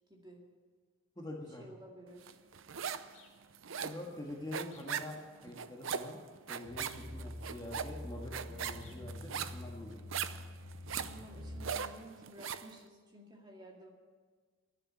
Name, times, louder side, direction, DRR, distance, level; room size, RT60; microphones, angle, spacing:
voice 1, 0.1-0.4 1.6-2.4 5.4-5.5 11.0-13.9, right 1 dB, 20° right, 0 dB, 2.1 m, -53 dB
voice 2, 1.1-1.7 3.8-6.2 6.5-10.0, left 1 dB, 20° left, -1 dB, 1.7 m, -45 dB
sound 1, 2.3-3.2 3.4-12.7, right 7 dB, 70° right, 0.6 m, -40 dB
sound 2, 3.1-3.4 4.7-5.0 6.8-7.2 8.8-9.1 10.9-11.2, left 6 dB, 70° left, 2.4 m, -62 dB
sound 3, 6.6-11.7, left 1 dB, 90° right, 5.1 m, -46 dB
12.0 x 10.5 x 9.7 m, 1.5 s
head